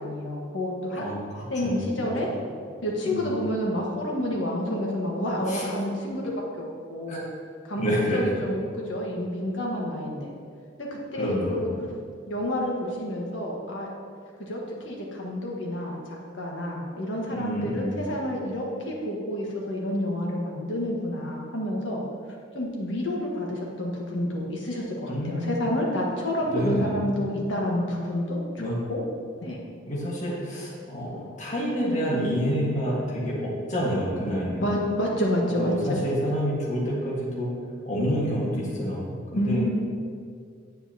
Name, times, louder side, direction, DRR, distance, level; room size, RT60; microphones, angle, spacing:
voice 1, 0.0-1.0 1.5-2.3 2.8-7.2 7.6-10.3 10.8-11.7 12.3-13.9 14.4-22.0 22.5-28.4 28.9-29.0 29.4-29.6 34.6-36.0 39.3-39.8, left 1 dB, 80° left, -2 dB, 1.5 m, -29 dB
voice 2, 0.9-2.1 3.0-3.2 5.5-5.6 7.1-7.2 7.8-8.2 11.1-11.8 17.3-18.0 25.1-25.6 26.5-26.9 28.6-28.7 29.9-34.7 35.6-37.5 37.9-39.6, equal, 40° left, -6 dB, 1.5 m, -28 dB
8.3 x 7.3 x 2.9 m, 2.2 s
head